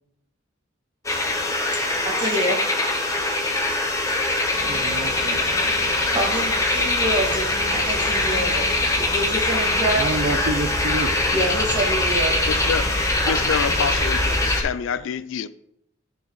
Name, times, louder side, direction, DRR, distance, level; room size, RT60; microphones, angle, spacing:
sound 1, 1.0-14.6, left 2 dB, 15° left, 0.9 m, -22 dB
voice 1, 1.8-2.6 6.1-10.1 11.3-12.4, right 1 dB, 25° right, 1.9 m, -26 dB
sound 2, 4.5-13.9, left 3 dB, 40° left, 0.8 m, -38 dB
voice 2, 4.7-5.5 9.9-11.2, right 2 dB, 65° right, 0.6 m, -28 dB
voice 3, 12.5-12.9 13.2-15.5, left 7 dB, 70° left, 0.3 m, -27 dB
13.0 x 4.6 x 3.1 m
head